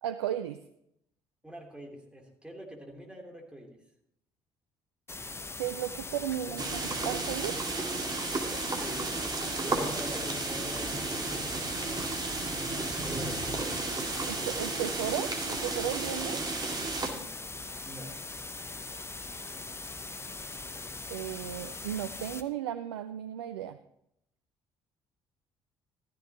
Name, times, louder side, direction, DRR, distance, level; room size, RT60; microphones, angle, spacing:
voice 1, 0.0-0.6 5.6-7.6 14.3-16.4 21.1-23.8, right 11 dB, 75° right, 10 dB, 0.5 m, -35 dB
voice 2, 1.4-3.8 6.5-6.6 7.1-7.2 7.9-8.2 8.4-12.2 13.0-14.5 17.8-18.1, equal, 5° right, 0 dB, 3.3 m, -45 dB
sound 1, 5.1-22.4, left 3 dB, 20° left, 1.0 m, -41 dB
sound 2, 6.6-17.1, right 3 dB, 30° right, 2.3 m, -33 dB
14.0 x 14.0 x 2.9 m, 0.76 s
figure-of-eight pair, 50°, 14 cm